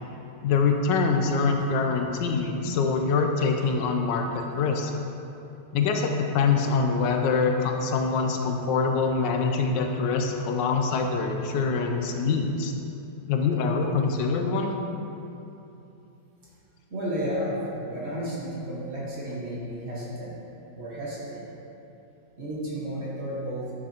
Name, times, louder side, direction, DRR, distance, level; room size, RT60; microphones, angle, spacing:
voice 1, 0.4-4.9 5.7-12.7 13.3-14.7, left 4 dB, 85° left, 3 dB, 1.3 m, -24 dB
voice 2, 16.9-20.3 20.7-21.4 22.4-23.7, equal, 40° right, -6 dB, 1.5 m, -32 dB
9.6 x 6.2 x 2.9 m, 2.8 s
omnidirectional pair, 1.9 m